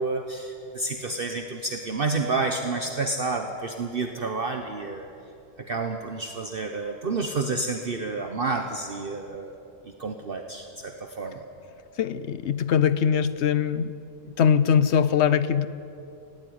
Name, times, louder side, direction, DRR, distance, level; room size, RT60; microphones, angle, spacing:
voice 1, 0.0-5.0 5.6-9.5 10.0-11.4, right 3 dB, 45° right, 5 dB, 1.2 m, -29 dB
voice 2, 12.0-13.9 14.4-15.7, left 8 dB, 65° left, 15 dB, 0.9 m, -22 dB
19.0 x 17.5 x 9.5 m, 2.8 s
omnidirectional pair, 1.3 m